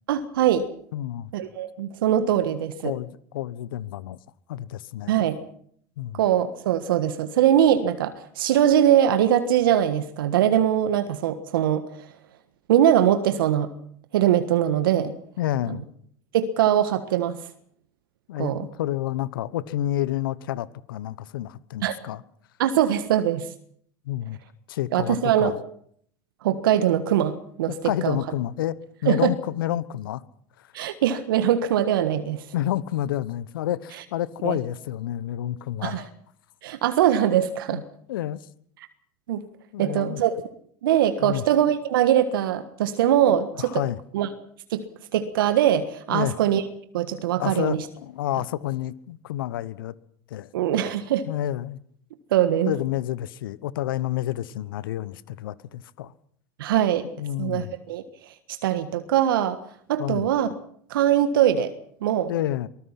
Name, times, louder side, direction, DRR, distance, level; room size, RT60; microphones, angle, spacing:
voice 1, 0.1-0.7 1.3-2.9 5.1-5.4 6.2-12.1 12.7-13.7 14.1-15.1 16.3-17.4 18.4-18.7 21.8-22.0 22.6-23.5 24.9-25.5 26.4-27.7 28.0-28.2 29.0-29.3 30.7-32.4 34.4-34.6 35.8-36.0 36.6-37.8 39.3-39.4 39.8-40.4 40.8-43.8 44.1-44.3 44.7-44.9 45.1-46.6 46.9-47.8 50.5-51.2 52.3-52.7 56.6-57.0 57.4-58.0 58.6-59.6 59.9-60.5 60.9-61.7 62.0-62.3, right 10 dB, 75° right, 1.5 m, -22 dB
voice 2, 0.9-1.3 2.8-4.2 4.5-5.1 6.0-6.2 15.4-15.8 18.3-22.2 24.0-24.4 24.7-25.6 27.8-30.2 32.5-36.1 37.7-37.8 38.1-38.4 39.7-40.2 41.2-41.4 43.6-44.0 46.1-46.4 47.4-49.9 50.3-50.5 51.3-51.8 52.7-56.1 57.2-57.7 60.0-60.3 62.3-62.7, left 13 dB, 75° left, 1.0 m, -29 dB
24.0 x 19.0 x 5.8 m
hypercardioid pair, 85°, 12 cm